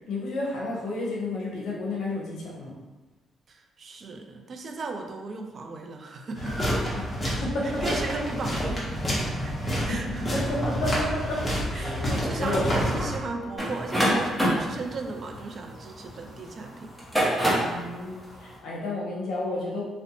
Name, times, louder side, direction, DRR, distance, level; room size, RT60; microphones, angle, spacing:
voice 1, 0.1-2.7 7.0-7.1 7.4-8.0 9.9-11.4 11.7-12.1 12.4-12.7 17.5-19.8, left 2 dB, 75° left, -4 dB, 0.7 m, -31 dB
voice 2, 3.5-6.7 7.2-9.5 9.8-10.2 11.7-16.9, right 3 dB, 50° right, 4 dB, 0.3 m, -36 dB
sound 1, 6.4-13.2, equal, 25° left, 0.8 m, -28 dB
sound 2, 13.6-16.3 16.9-17.8, equal, ahead, 0.8 m, -25 dB
2.5 x 2.0 x 2.8 m, 1.2 s
cardioid pair, 90°, 0 cm